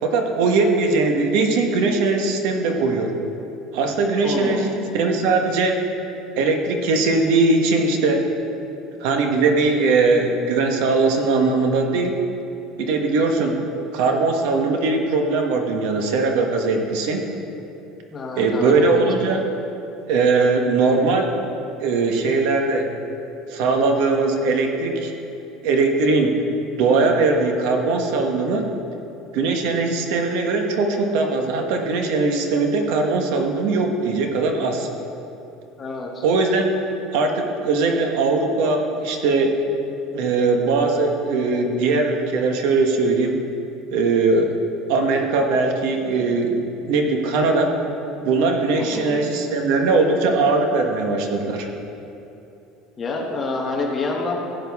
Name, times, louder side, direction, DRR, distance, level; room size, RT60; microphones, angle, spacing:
voice 1, 0.0-3.1 3.7-5.8 6.4-8.2 9.0-12.2 12.8-13.6 13.9-17.2 18.4-19.4 20.1-21.3 21.8-22.9 23.5-25.1 25.6-26.4 26.8-28.7 29.3-34.9 36.2-36.7 37.1-39.6 40.1-43.3 43.9-44.5 44.9-47.7 48.2-51.7, right 3 dB, 65° right, 3 dB, 1.2 m, -20 dB
voice 2, 4.2-4.7 18.1-19.1 35.8-36.2 48.7-49.2 53.0-54.4, left 3 dB, 20° left, -1 dB, 1.1 m, -27 dB
15.5 x 9.2 x 3.6 m, 2.8 s
cardioid pair, 175°, 0 cm